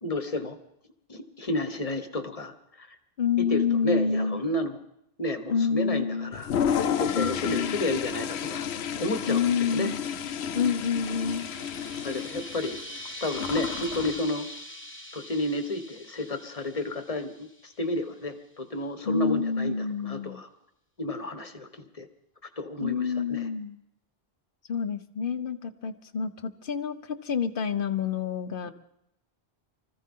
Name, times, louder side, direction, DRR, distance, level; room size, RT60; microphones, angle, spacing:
voice 1, 0.0-0.6 1.1-3.0 3.4-4.8 5.2-6.5 7.0-8.7 9.0-9.4 9.7-9.9 12.0-12.8 13.2-14.5 15.1-20.5 21.0-22.1 22.6-23.5 28.6-28.7, left 1 dB, 35° left, 8 dB, 1.3 m, -31 dB
voice 2, 3.2-4.4 5.5-6.3 7.1-7.8 9.3-10.0 10.5-11.5 19.0-20.4 22.8-23.8 24.7-28.7, left 6 dB, 60° left, 11 dB, 1.0 m, -28 dB
Toilet flush, 6.3-14.2, left 8 dB, 85° left, 1.0 m, -31 dB
sound 1, 9.7-17.9, equal, 10° left, 1.3 m, -43 dB
24.5 x 14.5 x 3.7 m, 0.79 s
omnidirectional pair, 1.1 m